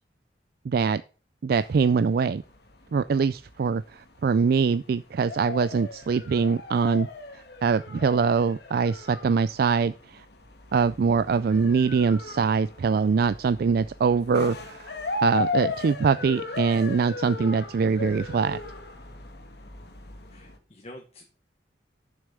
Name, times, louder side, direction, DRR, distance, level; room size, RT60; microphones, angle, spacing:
voice 1, 0.7-1.0 1.4-2.4 2.9-7.1 7.3-10.2 10.7-14.9 15.2-18.6, right 5 dB, 55° right, 13 dB, 0.3 m, -23 dB
sound 1, 1.5-20.6, left 3 dB, 65° left, 1.6 m, -37 dB
voice 2, 20.3-21.3, left 1 dB, 35° left, 4 dB, 1.3 m, -47 dB
7.1 x 6.4 x 6.8 m, 0.36 s
head